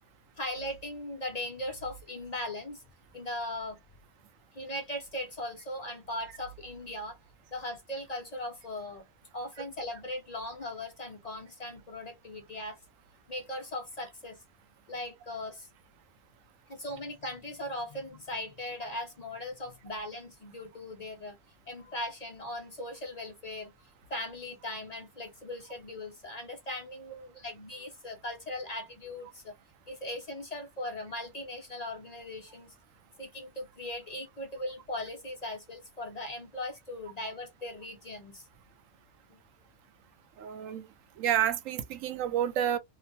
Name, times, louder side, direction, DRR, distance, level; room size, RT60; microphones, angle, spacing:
voice 1, 0.4-2.8 3.1-3.8 4.5-7.2 7.5-9.0 9.3-12.8 13.3-14.4 14.9-15.7 16.7-21.4 21.7-23.7 24.1-29.5 29.9-32.7 33.2-38.5 39.3-39.4, left 1 dB, 50° left, 0.5 m, -39 dB
voice 2, 40.4-40.8 41.2-42.8, right 10 dB, 85° right, 1.0 m, -29 dB
3.0 x 2.0 x 2.7 m
omnidirectional pair, 1.3 m